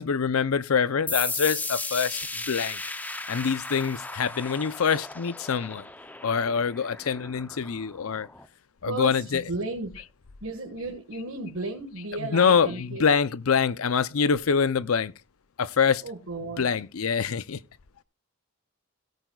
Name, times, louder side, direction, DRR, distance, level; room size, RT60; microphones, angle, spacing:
voice 1, 0.0-2.2 2.5-2.8 3.3-5.8 6.2-8.3 8.8-9.5 12.2-15.1 15.6-16.0 16.6-17.6, left 6 dB, 85° left, 0.6 m, -25 dB
sound 1, 1.1-8.4, left 3 dB, 10° left, 0.6 m, -36 dB
voice 2, 8.8-10.0 10.4-13.1 16.0-16.8, right 2 dB, 80° right, 1.6 m, -34 dB
17.5 x 9.2 x 2.3 m
head